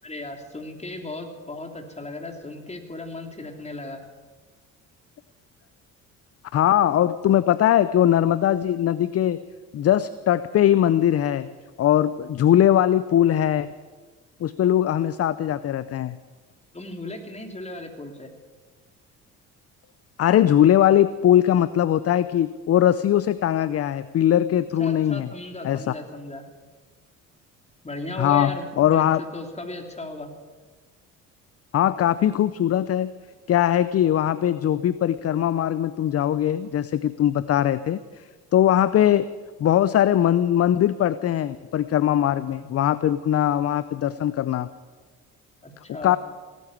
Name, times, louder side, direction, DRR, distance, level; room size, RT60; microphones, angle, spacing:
voice 1, 0.0-4.0 16.7-18.3 24.8-26.4 27.8-30.3 45.6-46.2, left 2 dB, 15° left, 4 dB, 3.1 m, -36 dB
voice 2, 6.5-9.4 9.7-11.5 11.8-13.7 14.4-16.2 20.2-25.3 25.6-25.8 28.2-29.2 31.7-33.1 33.5-38.0 38.5-39.3 39.6-44.7 46.0-46.2, left 11 dB, 40° left, 15 dB, 0.6 m, -20 dB
17.5 x 9.4 x 8.5 m, 1.4 s
supercardioid pair, 65°, 37 cm